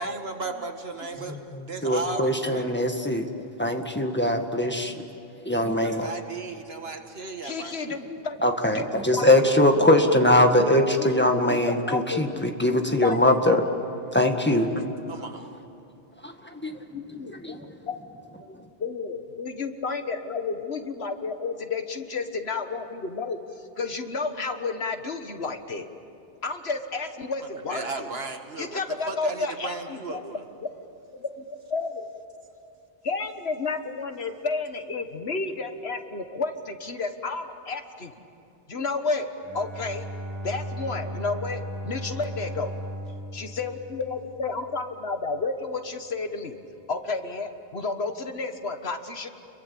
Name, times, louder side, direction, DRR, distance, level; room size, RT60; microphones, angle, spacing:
voice 1, 0.0-2.9 5.7-8.0 14.5-15.5 27.7-30.4, right 3 dB, 75° right, 5 dB, 2.1 m, -36 dB
voice 2, 1.3-3.3 3.6-5.0 5.4-6.1 8.4-13.6 14.1-14.7 16.2-16.7 17.4-17.6, left 1 dB, 10° left, 4 dB, 1.7 m, -22 dB
voice 3, 7.4-8.4 8.6-9.5 11.0-13.5 16.9-18.0 18.4-23.4 23.8-25.9 26.4-28.1 28.6-30.7 31.1-32.0 33.0-38.2 38.7-40.0 40.4-42.7 43.3-46.6 46.9-49.3, left 4 dB, 85° left, 7 dB, 1.8 m, -32 dB
Bowed string instrument, 39.4-44.6, equal, 15° right, 3.0 m, -36 dB
30.0 x 23.0 x 8.5 m, 2.7 s
omnidirectional pair, 1.0 m